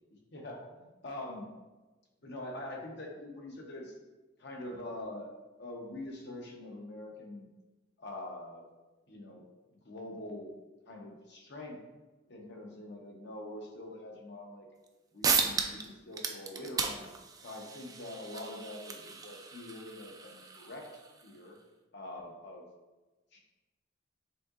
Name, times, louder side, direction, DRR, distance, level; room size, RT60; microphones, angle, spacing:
voice 1, 0.3-1.5 2.2-3.9 4.4-5.3 5.6-7.5 8.0-8.6 9.1-9.5 9.7-10.6 10.9-11.8 12.3-14.7 15.1-17.1 17.4-20.9 21.2-21.5 21.9-22.7 23.3-23.4, left 1 dB, 65° left, 0 dB, 0.9 m, -44 dB
sound 1, 14.9-15.0 15.2-15.9 16.1-21.3, right 5 dB, 20° right, 0.3 m, -35 dB
5.8 x 3.7 x 2.5 m, 1.2 s
head